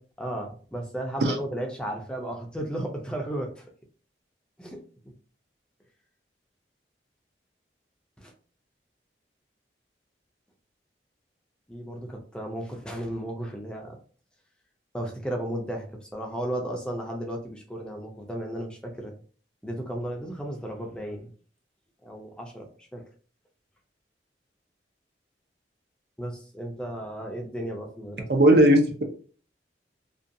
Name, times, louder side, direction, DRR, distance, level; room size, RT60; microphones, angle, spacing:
voice 1, 0.2-3.6 4.6-4.8 8.2-8.3 11.7-14.0 14.9-19.1 19.6-21.3 22.0-23.0 26.2-28.3, right 1 dB, 5° left, 1 dB, 0.4 m, -34 dB
voice 2, 28.3-29.0, right 1 dB, 65° right, 4 dB, 0.5 m, -17 dB
2.6 x 2.2 x 2.6 m, 0.41 s
head